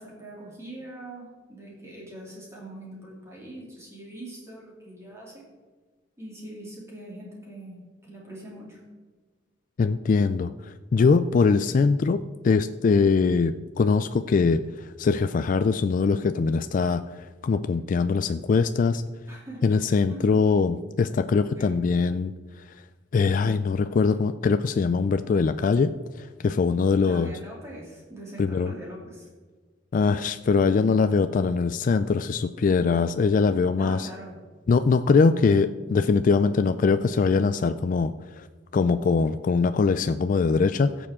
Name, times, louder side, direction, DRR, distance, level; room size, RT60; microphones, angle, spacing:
voice 1, 0.0-5.4 6.2-8.8 19.3-19.8 20.1-20.5 21.5-21.8 27.0-29.3 33.8-34.4, right 1 dB, 15° right, -4 dB, 2.9 m, -42 dB
voice 2, 9.8-10.5 10.9-17.0 17.4-19.0 19.6-22.3 23.1-27.3 28.4-28.7 29.9-34.1 34.7-38.5 38.7-41.1, left 4 dB, 45° left, 11 dB, 0.3 m, -22 dB
16.0 x 7.2 x 3.6 m, 1.3 s
head